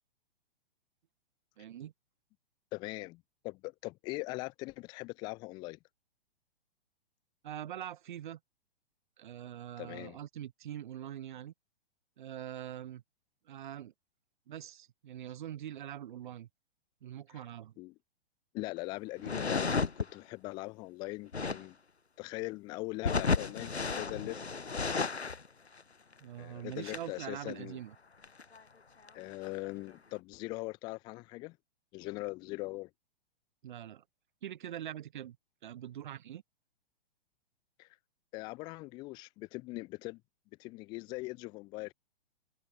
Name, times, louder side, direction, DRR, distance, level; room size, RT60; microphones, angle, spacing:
voice 1, 1.6-1.9 7.4-8.4 9.2-11.5 12.2-13.0 13.5-13.9 14.5-16.5 17.0-17.7 26.2-27.9 33.6-34.0 34.4-35.4 35.6-36.4, right 11 dB, 50° right, 0.6 m, -43 dB
voice 2, 2.7-5.8 9.8-10.2 17.8-17.9 18.5-21.8 22.2-24.4 26.4-27.8 29.1-31.6 31.9-32.9 37.8-37.9 38.3-40.2 40.6-41.9, left 23 dB, 15° left, 0.5 m, -41 dB
sound 1, 19.2-20.1 21.2-21.7 23.0-25.5 25.8-25.9 26.1-26.2 26.7-27.1 28.2-28.6 29.1-29.2 29.4-29.9, left 4 dB, 90° left, 0.8 m, -33 dB
figure-of-eight pair, 115°, 32 cm